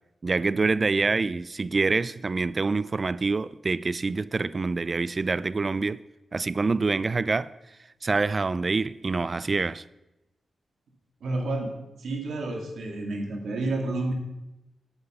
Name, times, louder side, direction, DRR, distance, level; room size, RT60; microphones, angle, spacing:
voice 1, 0.2-6.0 6.3-7.5 8.0-9.8, right 3 dB, 35° right, 0.3 m, -26 dB
voice 2, 11.2-11.7 12.0-14.1, right 2 dB, 85° right, 2.0 m, -30 dB
8.9 x 8.1 x 5.6 m
wide cardioid pair, 95°, 0 cm